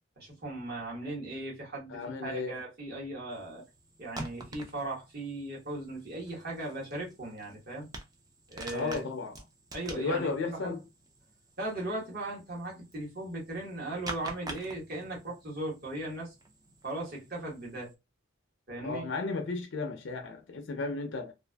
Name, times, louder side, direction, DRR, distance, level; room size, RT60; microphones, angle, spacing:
voice 1, 0.2-3.6 4.0-7.9 8.5-9.1 9.7-10.7 11.6-16.3 16.8-17.9 18.7-19.1, right 2 dB, 45° right, 1.2 m, -38 dB
voice 2, 1.9-2.6 8.7-9.3 10.0-10.8 18.8-21.3, left 3 dB, 55° left, 0.4 m, -34 dB
sound 1, 3.3-17.9, right 2 dB, 20° right, 0.3 m, -48 dB
2.5 x 2.4 x 2.2 m
head